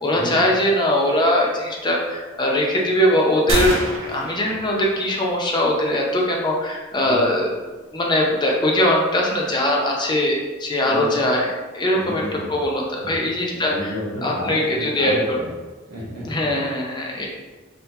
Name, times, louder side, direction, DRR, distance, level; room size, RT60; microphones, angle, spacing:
voice 1, 0.0-3.8 4.1-7.5 7.9-11.5 11.7-12.2 12.5-13.7 14.2-15.1 16.3-17.3, left 1 dB, 25° left, -2 dB, 0.6 m, -21 dB
sound 1, 3.5-5.4, right 1 dB, 75° right, 0.6 m, -27 dB
voice 2, 7.0-7.3 10.9-11.2 11.9-12.6 13.0-15.5 15.9-16.7 17.0-17.3, equal, 55° right, -6 dB, 1.3 m, -32 dB
3.8 x 2.8 x 2.7 m, 1.3 s
head